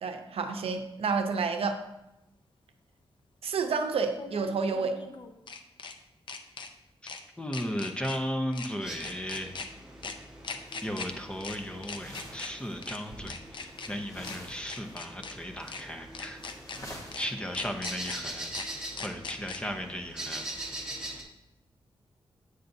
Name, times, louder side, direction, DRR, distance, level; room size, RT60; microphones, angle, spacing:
voice 1, 0.0-1.8 3.4-5.0, right 4 dB, 80° right, 6 dB, 0.6 m, -29 dB
sound 1, 1.6-1.7 4.1-5.9 6.3-6.7 7.1-7.2 7.5-8.2 8.5-8.7 9.0-9.7 10.0-10.1 10.4-11.1 11.4-11.6 11.8-12.5 12.8-13.0 13.3-13.9 14.2-14.4 14.7-15.3 15.7-15.8 16.1-16.8 17.1-17.2 17.5-18.2 18.5-18.7 19.0-19.6, left 4 dB, 55° left, 0.5 m, -40 dB
voice 2, 7.4-9.5 10.8-16.4 17.2-18.5 19.0-20.5, equal, 10° left, 4 dB, 0.6 m, -35 dB
sound 2, 8.8-21.2, right 1 dB, 5° right, 1.2 m, -43 dB
sound 3, 10.6-11.1 11.3-12.7 13.0-13.2 13.7-15.0 15.3-15.5 15.9-16.0 16.4-18.0, equal, 35° left, 1.0 m, -48 dB
7.9 x 6.8 x 2.6 m, 0.89 s
wide cardioid pair, 145°, 10 cm